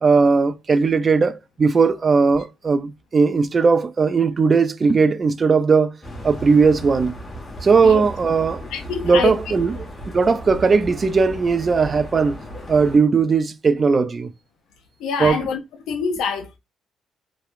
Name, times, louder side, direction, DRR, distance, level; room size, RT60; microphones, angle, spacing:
voice 1, 0.0-5.9 6.2-7.1 7.6-8.6 9.0-9.7 10.1-12.4 12.7-14.3 15.2-15.4, right 4 dB, 40° right, 0.3 m, -18 dB
sound 1, 6.0-13.0, right 1 dB, 35° left, 1.1 m, -35 dB
voice 2, 8.7-9.4 15.0-15.6 15.9-16.6, left 6 dB, 85° left, 0.4 m, -25 dB
2.9 x 2.1 x 2.4 m
cardioid pair, 90°, 0 cm